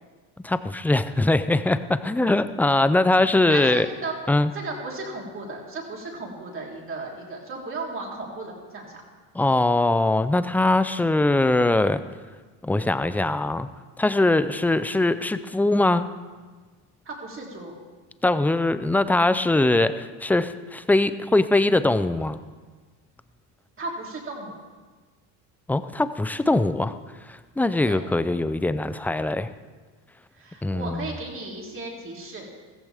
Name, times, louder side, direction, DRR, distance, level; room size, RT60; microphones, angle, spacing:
voice 1, 0.4-3.9 4.3-4.5 9.3-12.0 12.6-13.7 14.0-16.1 18.2-22.4 25.7-26.9 27.3-29.5 30.6-31.1, left 2 dB, 5° left, 12 dB, 0.4 m, -22 dB
voice 2, 3.5-4.1 4.5-8.9 17.0-17.7 23.8-24.6 27.9-28.0 30.3-32.5, right 3 dB, 30° right, -2 dB, 3.3 m, -35 dB
15.0 x 15.0 x 3.5 m, 1.4 s
cardioid pair, 115°, 39 cm